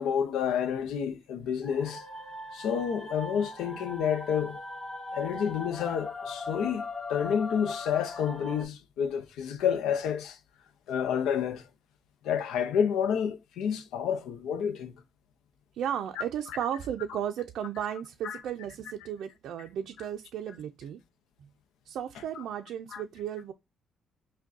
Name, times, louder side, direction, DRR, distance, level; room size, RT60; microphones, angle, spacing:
voice 1, 0.0-2.0 2.5-4.6 5.1-6.8 7.1-10.4 10.9-11.6 12.2-14.9 18.2-18.4 22.9-23.0, left 8 dB, 85° left, 0.5 m, -29 dB
sound 1, 1.6-8.6, left 2 dB, 40° left, 1.8 m, -39 dB
voice 2, 15.7-21.0 21.9-23.5, right 9 dB, 75° right, 0.4 m, -34 dB
5.9 x 2.2 x 2.5 m
cardioid pair, 90°, 0 cm